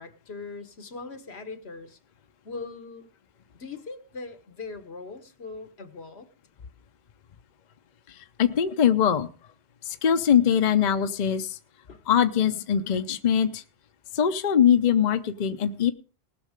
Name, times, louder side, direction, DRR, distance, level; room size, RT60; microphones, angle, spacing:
voice 1, 0.0-2.0 2.4-3.1 3.6-6.3 11.9-12.0, left 4 dB, 75° left, 8 dB, 1.5 m, -40 dB
voice 2, 8.1-9.3 9.8-11.6 12.1-13.6 14.1-15.9, left 8 dB, 50° left, 9 dB, 0.7 m, -22 dB
19.0 x 6.4 x 5.0 m, 0.40 s
omnidirectional pair, 1.1 m